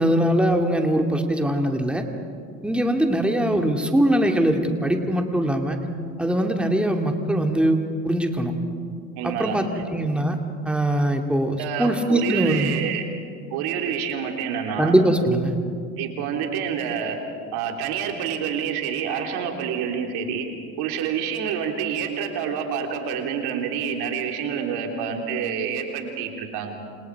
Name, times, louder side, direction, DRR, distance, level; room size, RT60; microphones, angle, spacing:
voice 1, 0.0-2.0 2.6-5.8 6.2-8.5 9.2-10.4 10.6-12.8 14.8-15.5, right 1 dB, 5° right, 3 dB, 2.5 m, -22 dB
voice 2, 9.2-9.8 11.6-13.0 13.5-14.9 16.0-17.2 17.5-20.5 20.8-26.8, right 7 dB, 70° right, 3 dB, 3.6 m, -28 dB
28.5 x 27.5 x 4.8 m, 2.4 s
hypercardioid pair, 75°, 40 cm